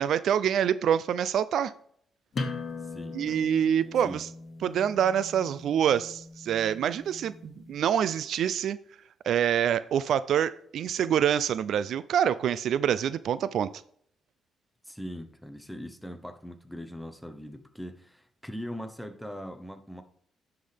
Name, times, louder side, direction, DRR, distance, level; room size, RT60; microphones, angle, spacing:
voice 1, 0.0-1.7 3.1-4.3 4.6-8.8 9.2-13.7, right 9 dB, 70° right, 16 dB, 0.3 m, -26 dB
sound 1, 2.3-7.7, left 3 dB, 40° left, 1.5 m, -40 dB
voice 2, 2.8-3.4 4.0-4.2 14.8-20.0, equal, ahead, 8 dB, 1.0 m, -41 dB
10.5 x 5.8 x 3.4 m, 0.63 s
cardioid pair, 90°, 0 cm